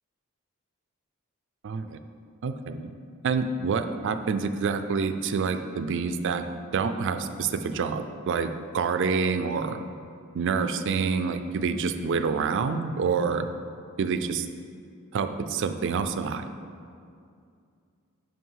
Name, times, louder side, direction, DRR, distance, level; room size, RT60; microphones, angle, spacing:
voice 1, 1.6-2.0 2.4-2.9 3.2-6.5 6.7-9.8 10.3-13.5 14.0-14.5 15.1-16.4, right 5 dB, 60° right, 9 dB, 0.4 m, -27 dB
5.6 x 5.1 x 5.6 m, 2.3 s
head